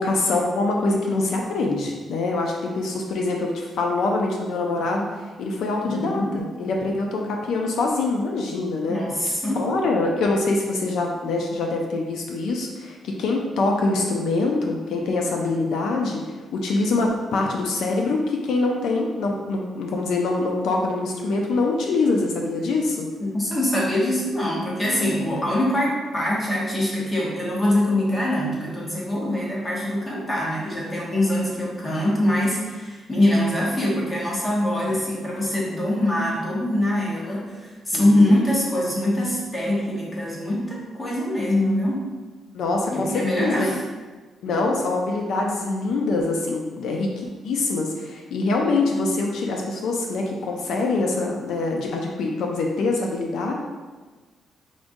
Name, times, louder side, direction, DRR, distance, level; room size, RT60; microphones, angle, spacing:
voice 1, 0.0-5.1 5.4-9.0 9.6-23.1 37.9-38.4 42.5-43.7 44.4-53.5, left 3 dB, 75° left, 0 dB, 0.5 m, -24 dB
voice 2, 5.8-6.3 8.9-9.6 23.2-42.0 42.9-43.8, left 1 dB, 15° left, -5 dB, 1.0 m, -23 dB
4.9 x 3.6 x 2.6 m, 1.3 s
cardioid pair, 180°, 0 cm